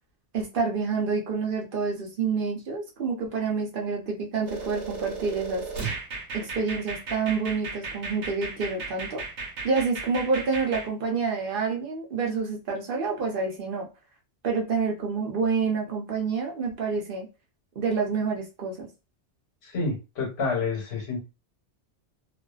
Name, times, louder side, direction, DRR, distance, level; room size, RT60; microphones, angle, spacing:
voice 1, 0.3-5.6 6.3-9.2 9.6-13.9 14.4-17.3 17.8-18.9, right 5 dB, 55° right, 1 dB, 0.8 m, -28 dB
sound 1, 4.5-10.9, right 4 dB, 80° right, 1.1 m, -35 dB
voice 2, 19.7-21.2, left 4 dB, 65° left, -1 dB, 1.2 m, -28 dB
2.5 x 2.4 x 2.3 m, 0.28 s
omnidirectional pair, 1.2 m